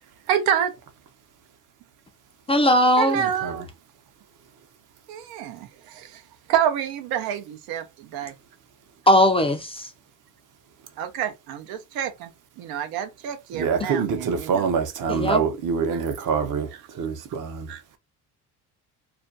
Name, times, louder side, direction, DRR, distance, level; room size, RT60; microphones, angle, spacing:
voice 1, 0.3-0.7 3.0-3.6 5.1-6.2 6.5-8.3 11.0-12.3 12.6-14.7 15.9-16.1 17.7-17.8, right 9 dB, 90° right, 0.6 m, -28 dB
voice 2, 2.5-3.2 9.1-9.9 15.1-15.4, left 1 dB, 15° left, 0.3 m, -19 dB
voice 3, 3.2-3.6 13.5-17.7, right 6 dB, 60° right, 0.8 m, -26 dB
2.5 x 2.2 x 2.5 m
cardioid pair, 100°, 36 cm